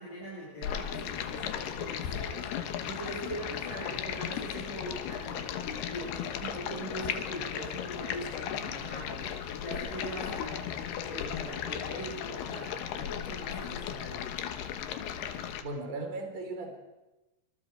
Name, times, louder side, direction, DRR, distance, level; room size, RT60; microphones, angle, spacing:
voice 1, 0.0-14.2, right 1 dB, 50° left, -7 dB, 8.1 m, -41 dB
Stream, 0.6-15.6, left 9 dB, 85° left, 3.4 m, -36 dB
voice 2, 15.6-16.8, right 2 dB, 55° right, 4 dB, 4.8 m, -37 dB
27.0 x 25.5 x 4.6 m, 1.0 s
omnidirectional pair, 4.4 m